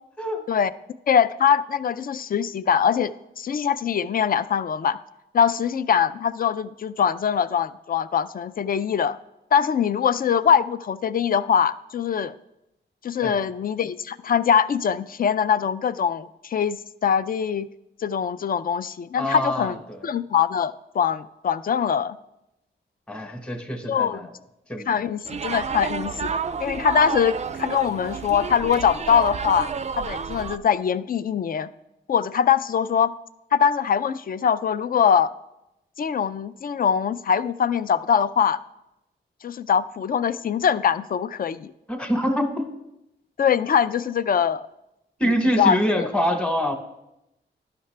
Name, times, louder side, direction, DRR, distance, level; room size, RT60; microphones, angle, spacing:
voice 1, 1.1-3.1 3.4-5.0 5.3-9.2 9.5-12.3 13.0-17.7 18.0-19.8 20.0-22.2 23.9-24.2 24.9-26.3 26.6-29.7 30.0-31.7 32.1-33.1 33.5-35.3 36.0-38.6 39.4-41.7 43.4-44.7 45.2-46.1, left 7 dB, 45° left, 15 dB, 0.4 m, -22 dB
voice 2, 19.2-20.0 23.1-24.3 24.7-25.1 41.9-42.7 45.2-46.7, equal, 5° left, 5 dB, 1.1 m, -25 dB
sound 1, 25.3-30.6, right 5 dB, 35° right, 0.4 m, -30 dB
11.0 x 5.7 x 3.3 m, 0.89 s
cardioid pair, 55°, 20 cm